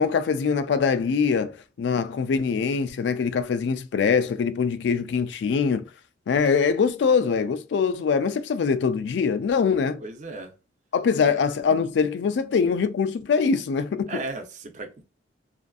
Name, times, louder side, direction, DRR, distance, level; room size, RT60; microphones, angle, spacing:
voice 1, 0.0-1.5 1.8-5.9 6.3-10.0 10.9-14.1, left 5 dB, 70° left, 0.3 m, -23 dB
voice 2, 10.0-10.5 14.1-15.1, right 2 dB, 40° right, 0.4 m, -35 dB
2.5 x 2.5 x 2.3 m
head